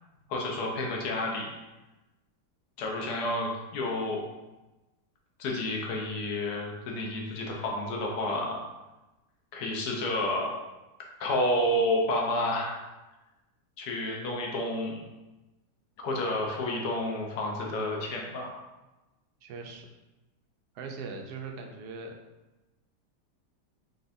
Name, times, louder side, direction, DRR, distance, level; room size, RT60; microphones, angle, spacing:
voice 1, 0.3-1.5 2.8-4.2 5.4-8.6 9.5-10.5 11.2-12.8 13.8-15.0 16.0-18.5, left 1 dB, 75° left, 0 dB, 1.3 m, -30 dB
voice 2, 19.4-19.9 20.7-22.1, right 4 dB, 75° right, 3 dB, 1.1 m, -40 dB
4.2 x 3.9 x 2.6 m, 1.1 s
omnidirectional pair, 1.8 m